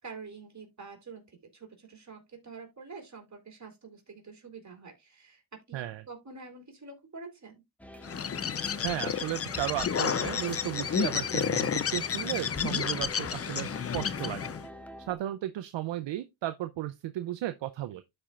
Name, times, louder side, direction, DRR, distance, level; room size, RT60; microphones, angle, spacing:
voice 1, 0.0-5.4 5.7-7.6, right 4 dB, 35° right, 3.1 m, -47 dB
sound 1, 7.8-15.2, left 2 dB, 5° left, 0.9 m, -45 dB
Bird, 8.0-14.7, left 7 dB, 30° left, 0.6 m, -31 dB
voice 2, 8.8-14.4 15.1-18.0, right 13 dB, 65° right, 0.6 m, -34 dB
12.5 x 4.4 x 2.4 m
cardioid pair, 75°, 47 cm